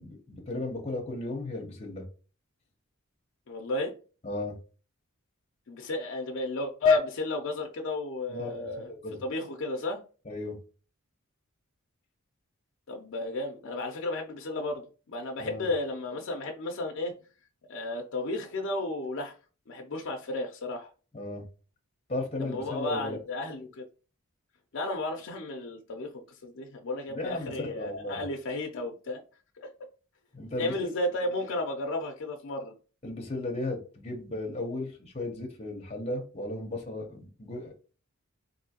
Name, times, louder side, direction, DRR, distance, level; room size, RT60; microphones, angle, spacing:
voice 1, 0.0-2.0 4.2-4.6 8.3-9.2 10.2-10.6 15.4-15.7 21.1-21.4 22.1-23.2 27.1-28.2 30.3-30.9 33.0-37.7, left 2 dB, 30° left, 0.7 m, -35 dB
voice 2, 3.5-3.9 5.7-8.9 9.2-10.0 12.9-17.1 17.7-19.3 19.7-20.9 22.4-23.8 24.7-29.2 29.6-29.7 30.6-32.7, left 2 dB, 60° left, 0.5 m, -32 dB
3.6 x 2.6 x 2.8 m
head